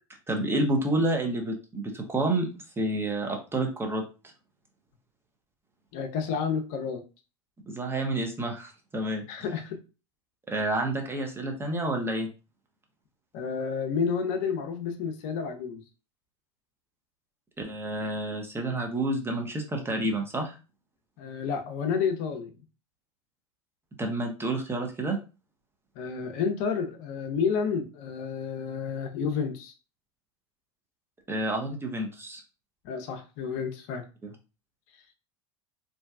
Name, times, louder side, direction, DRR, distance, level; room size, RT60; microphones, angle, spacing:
voice 1, 0.3-2.5 2.8-4.0 7.7-9.2 10.5-12.3 17.6-20.6 24.0-25.2 31.3-32.4 34.2-34.3, right 1 dB, 15° right, 2 dB, 0.6 m, -29 dB
voice 2, 5.9-7.0 9.3-9.8 13.3-15.8 21.2-22.5 26.0-29.7 32.8-34.0, left 6 dB, 55° left, 5 dB, 0.5 m, -30 dB
2.6 x 2.2 x 2.3 m, 0.32 s
hypercardioid pair, 85°, 16 cm